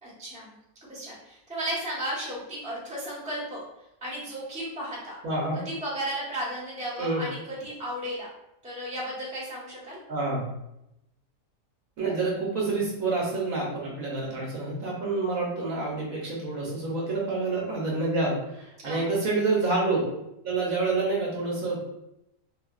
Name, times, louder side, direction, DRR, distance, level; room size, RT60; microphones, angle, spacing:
voice 1, 0.0-0.6 0.9-3.6 4.0-5.1 5.6-8.3 8.6-10.0 18.8-19.1, right 1 dB, 5° right, -7 dB, 0.8 m, -34 dB
voice 2, 5.2-5.6 7.0-7.2 10.1-10.5 12.0-20.1 20.4-21.8, right 3 dB, 65° right, -4 dB, 1.1 m, -28 dB
3.9 x 2.3 x 2.3 m, 0.86 s
omnidirectional pair, 1.7 m